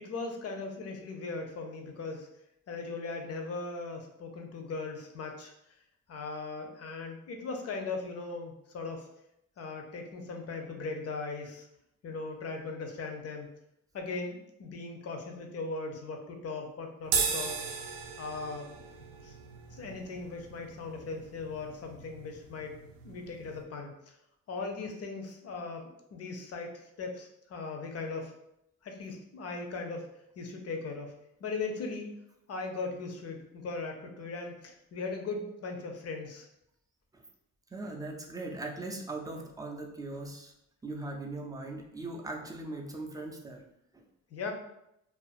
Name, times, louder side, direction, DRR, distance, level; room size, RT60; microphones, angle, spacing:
voice 1, 0.0-2.3 2.7-5.5 6.1-9.1 9.6-11.7 12.0-13.5 13.9-17.5 18.2-18.9 19.2-19.4 19.7-22.8 23.0-24.1 24.5-28.3 28.8-30.1 30.4-31.1 31.4-32.1 32.5-36.5 44.3-44.5, left 3 dB, 50° left, 3 dB, 0.6 m, -38 dB
sound 1, 17.0-23.6, right 5 dB, 90° right, 0.5 m, -37 dB
voice 2, 37.7-40.5 40.8-43.6 43.9-44.0, right 2 dB, 10° right, 0 dB, 0.4 m, -39 dB
2.5 x 2.4 x 2.4 m, 0.81 s
supercardioid pair, 80°, 32 cm